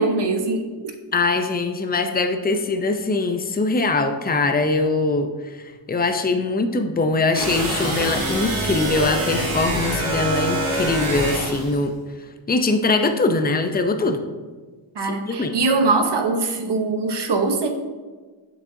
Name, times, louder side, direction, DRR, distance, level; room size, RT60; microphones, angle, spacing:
voice 1, 0.0-1.0 15.0-17.7, right 3 dB, 55° right, 6 dB, 1.0 m, -22 dB
voice 2, 1.1-5.3 5.9-11.9 12.5-14.2 15.0-15.6, left 3 dB, 20° left, 7 dB, 0.6 m, -22 dB
sound 1, 7.3-11.8, right 1 dB, 80° right, 2.1 m, -25 dB
7.1 x 7.1 x 2.7 m, 1.4 s
cardioid pair, 60°, 49 cm